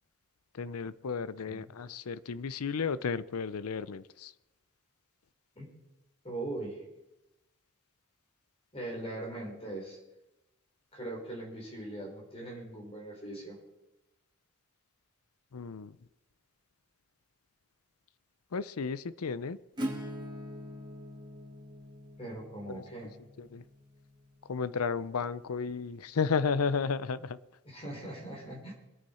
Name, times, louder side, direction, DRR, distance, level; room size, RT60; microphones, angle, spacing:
voice 1, 0.5-4.3 15.5-16.0 18.5-19.6 22.7-22.8 23.4-23.6 24.5-27.4, left 5 dB, 85° left, 17 dB, 0.6 m, -33 dB
voice 2, 6.2-6.8 8.7-10.0 10.9-13.6 22.2-23.1 27.7-28.7, right 1 dB, 25° left, -1 dB, 3.7 m, -40 dB
Acoustic guitar / Strum, 19.8-25.3, equal, 20° right, 2.3 m, -43 dB
23.0 x 9.2 x 4.3 m, 0.95 s
head